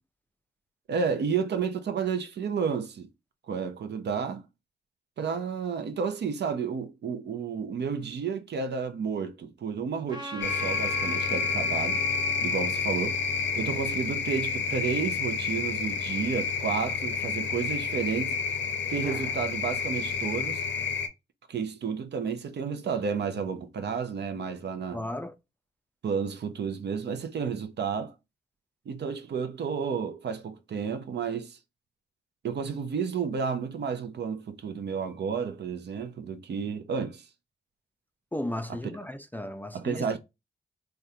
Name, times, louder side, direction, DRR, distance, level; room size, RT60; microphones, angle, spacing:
voice 1, 0.9-3.1 3.5-4.4 5.2-12.0 12.4-13.2 13.6-18.4 18.9-20.6 21.5-25.0 26.0-28.1 28.9-31.6 32.4-37.2 39.7-40.2, right 6 dB, 65° right, 0.6 m, -31 dB
Trumpet, 10.1-14.7, equal, 25° right, 1.2 m, -43 dB
sound 1, 10.4-21.1, left 5 dB, 80° left, 0.5 m, -29 dB
voice 2, 24.9-25.3 38.3-40.0, left 1 dB, 10° left, 0.4 m, -35 dB
3.5 x 2.3 x 2.7 m
cardioid pair, 75°, 19 cm